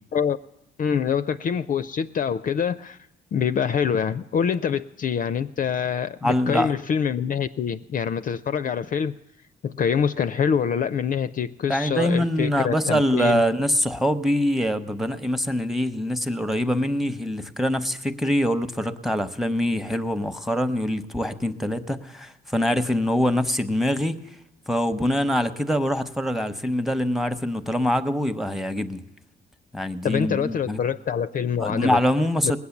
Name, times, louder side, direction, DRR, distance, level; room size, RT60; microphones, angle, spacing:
voice 1, 0.8-3.0 3.3-9.1 9.6-13.4 30.0-32.0, left 7 dB, 45° left, 12 dB, 0.4 m, -25 dB
voice 2, 6.2-6.7 11.7-24.2 24.7-29.0 29.7-30.8 31.6-32.6, equal, ahead, 11 dB, 0.8 m, -24 dB
19.5 x 8.4 x 7.1 m, 0.87 s
cardioid pair, 90°, 20 cm